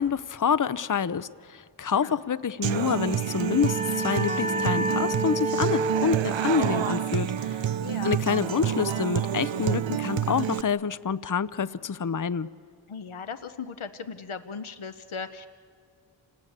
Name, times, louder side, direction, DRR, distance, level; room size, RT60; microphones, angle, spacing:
voice 1, 0.0-7.6 8.0-12.5, left 6 dB, 40° left, 16 dB, 0.6 m, -27 dB
Human voice / Acoustic guitar, 2.6-10.6, right 10 dB, 70° right, 0.6 m, -28 dB
sound 1, 3.0-8.4, right 1 dB, 15° right, 0.7 m, -31 dB
voice 2, 7.8-8.2 12.9-15.5, left 5 dB, 90° left, 9 dB, 0.8 m, -38 dB
28.0 x 19.0 x 8.7 m, 2.1 s
wide cardioid pair, 40°, 47 cm